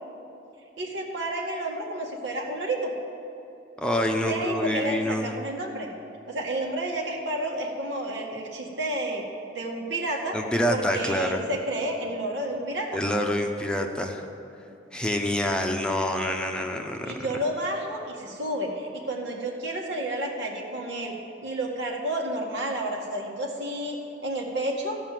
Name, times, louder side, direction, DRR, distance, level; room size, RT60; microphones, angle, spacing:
voice 1, 0.8-2.9 4.3-5.9 6.3-9.2 9.5-10.4 10.7-13.0 17.1-21.2 21.4-24.0 24.2-25.0, right 1 dB, 85° right, 0 dB, 1.9 m, -30 dB
voice 2, 3.8-5.3 10.3-11.4 12.9-14.2 14.9-17.0, left 1 dB, 5° left, 2 dB, 0.7 m, -26 dB
15.0 x 5.6 x 7.5 m, 2.9 s
head